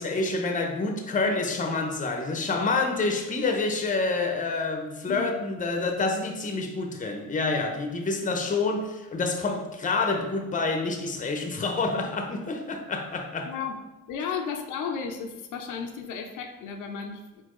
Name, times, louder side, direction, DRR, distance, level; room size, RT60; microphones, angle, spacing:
voice 1, 0.0-13.5, left 3 dB, 25° left, 5 dB, 0.7 m, -28 dB
voice 2, 5.1-5.4 13.5-17.4, left 6 dB, 85° left, 4 dB, 0.6 m, -34 dB
4.2 x 4.0 x 3.1 m, 1.1 s
cardioid pair, 90°, 30 cm